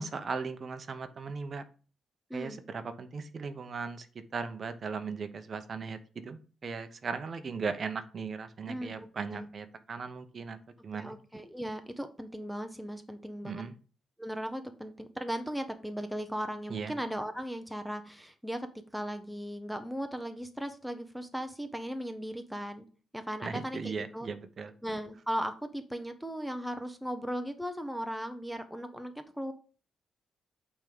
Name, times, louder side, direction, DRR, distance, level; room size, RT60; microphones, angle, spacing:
voice 1, 0.0-1.6 2.3-4.1 4.3-10.6 10.8-11.2 13.4-13.7 16.7-16.9 23.4-24.7, right 5 dB, 35° right, 9 dB, 0.7 m, -37 dB
voice 2, 2.3-2.6 8.7-9.5 11.0-13.6 14.2-18.7 18.9-22.9 23.1-24.3 24.8-29.5, equal, ahead, 7 dB, 0.6 m, -37 dB
8.8 x 3.6 x 5.3 m, 0.38 s
wide cardioid pair, 170°, 0 cm